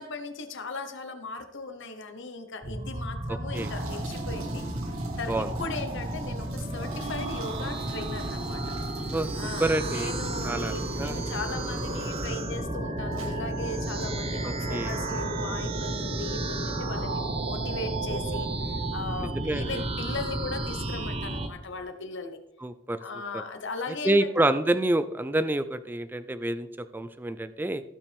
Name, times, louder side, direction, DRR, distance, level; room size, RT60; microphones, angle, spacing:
voice 1, 0.0-4.7 5.2-8.7 9.3-22.4 23.0-24.3, left 3 dB, 60° left, 7 dB, 1.0 m, -38 dB
sound 1, 2.6-21.5, right 1 dB, 30° right, 0.9 m, -32 dB
voice 2, 3.3-3.7 5.3-5.5 9.1-9.3 9.6-10.2 10.4-11.2 14.4-15.0 19.2-19.7 22.6-23.0 23.3-23.4 24.0-27.8, right 1 dB, 10° right, 12 dB, 0.3 m, -28 dB
sound 2, 3.5-12.5 13.1-13.4 14.0-14.2 14.9-15.1 15.9-16.0, right 4 dB, 85° right, 1.5 m, -45 dB
sound 3, 8.7-20.4, right 6 dB, 65° right, 0.7 m, -41 dB
16.5 x 5.8 x 3.5 m, 0.93 s
head